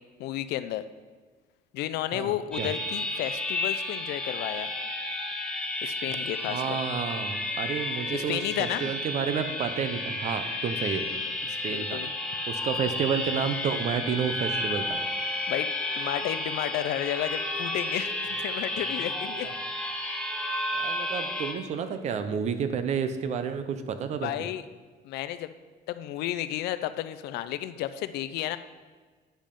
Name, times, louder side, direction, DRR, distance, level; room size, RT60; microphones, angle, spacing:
voice 1, 0.2-0.8 1.7-4.7 5.8-6.8 8.1-8.9 11.7-12.1 15.5-15.7 15.9-19.5 24.2-24.6 25.0-25.5 25.9-28.6, left 13 dB, 60° left, 13 dB, 0.4 m, -32 dB
voice 2, 2.1-2.7 6.5-11.1 11.4-12.0 12.5-15.0 19.4-19.5 20.7-24.5, right 7 dB, 40° right, 10 dB, 0.5 m, -30 dB
sound 1, 2.5-21.5, left 2 dB, 5° left, 0.7 m, -32 dB
8.8 x 5.3 x 5.2 m, 1.4 s
cardioid pair, 175°, 19 cm